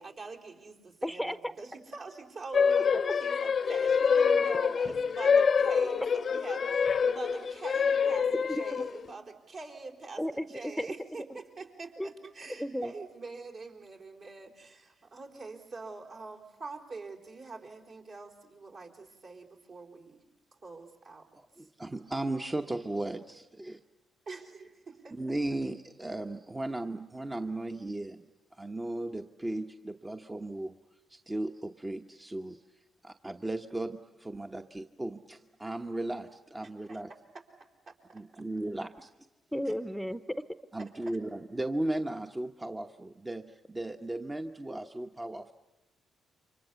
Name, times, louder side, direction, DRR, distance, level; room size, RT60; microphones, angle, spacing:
voice 1, 0.0-20.2 20.6-21.2 21.6-21.7 24.3-25.2 36.9-37.0 38.1-38.4 40.8-41.2, right 3 dB, 55° right, 0 dB, 4.3 m, -45 dB
voice 2, 1.0-1.5 8.5-8.8 10.2-10.5 10.8-10.9 11.3-11.4 12.0-12.1 12.6-12.9 39.5-40.2, equal, ahead, 12 dB, 0.9 m, -33 dB
sound 1, 2.5-9.1, left 6 dB, 50° left, 0.8 m, -26 dB
voice 3, 21.3-23.8 25.1-30.8 31.1-32.6 33.0-37.1 38.1-39.1 40.7-45.5, right 1 dB, 20° right, 5 dB, 1.0 m, -36 dB
29.5 x 25.0 x 7.0 m, 0.98 s
hypercardioid pair, 45°, 0 cm